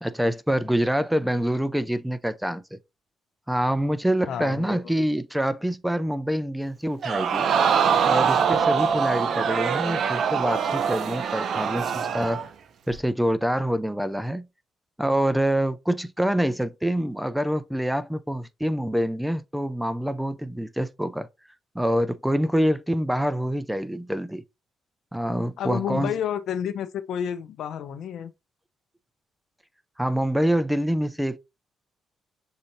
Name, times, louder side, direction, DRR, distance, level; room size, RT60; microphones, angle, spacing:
voice 1, 0.0-2.8 3.5-7.5 8.1-12.5 12.9-14.5 15.0-21.3 21.7-24.4 25.1-26.1 30.0-31.4, equal, 5° right, 0.4 m, -26 dB
voice 2, 4.3-4.9 25.6-28.3, left 9 dB, 70° left, 0.5 m, -30 dB
Crowd, 7.0-12.5 12.9-13.0, right 7 dB, 60° right, 0.5 m, -23 dB
6.4 x 2.8 x 2.7 m
cardioid pair, 90°, 0 cm